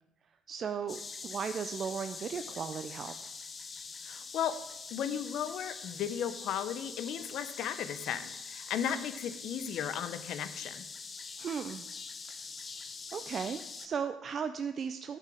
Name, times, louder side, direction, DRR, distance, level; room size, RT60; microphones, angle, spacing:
voice 1, 0.5-3.1 11.4-11.9 12.2-12.4 13.1-15.2, right 6 dB, 35° right, 9 dB, 0.4 m, -36 dB
sound 1, 0.9-13.9, left 4 dB, 25° left, 0.7 m, -44 dB
voice 2, 4.0-4.6 4.9-10.9, left 9 dB, 60° left, 12 dB, 0.8 m, -35 dB
10.0 x 5.7 x 6.2 m, 0.87 s
cardioid pair, 150°, 0 cm